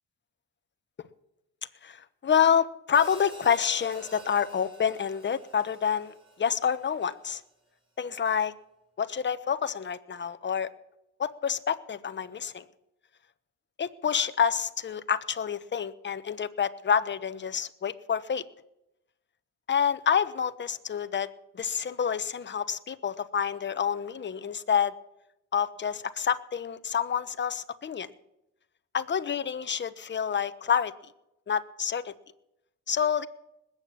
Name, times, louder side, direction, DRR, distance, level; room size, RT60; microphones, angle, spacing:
voice 1, 1.8-7.4 8.0-8.5 9.0-10.7 11.2-12.7 13.8-18.4 19.7-21.3 21.5-24.9 25.5-28.1 28.9-30.9 31.5-32.1 32.9-33.3, left 7 dB, 40° left, 12 dB, 1.1 m, -28 dB
Hi-hat, 2.9-7.2, right 2 dB, 15° right, 4.6 m, -49 dB
20.0 x 9.0 x 7.0 m, 0.87 s
cardioid pair, 90°, 30 cm